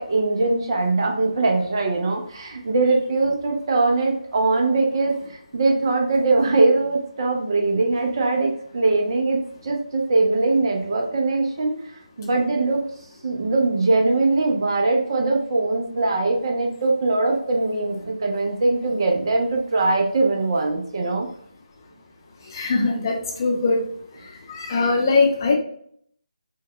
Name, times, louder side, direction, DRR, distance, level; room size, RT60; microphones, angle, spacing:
voice 1, 0.0-11.8 12.2-12.8 13.2-21.3, right 3 dB, 40° right, 1 dB, 0.6 m, -21 dB
voice 2, 22.5-23.8 24.5-25.5, left 3 dB, 30° left, -1 dB, 0.7 m, -21 dB
4.5 x 2.3 x 2.9 m, 0.64 s
figure-of-eight pair, 155°, 4 cm